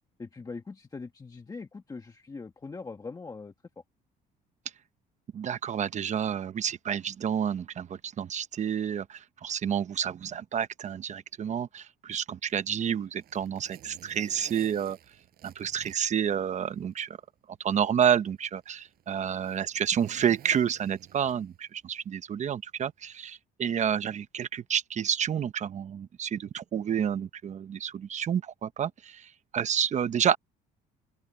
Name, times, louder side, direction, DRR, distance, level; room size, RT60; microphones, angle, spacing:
voice 1, 0.2-3.5, left 4 dB, 20° left, 1.5 m, -41 dB
voice 2, 5.3-15.0 15.4-17.1 17.6-30.4, right 8 dB, 45° right, 1.0 m, -29 dB
Zipper (clothing), 12.5-17.0 17.4-17.5 18.3-21.7 22.9-23.1, right 12 dB, 65° right, 7.1 m, -53 dB
cardioid pair, 110°, 17 cm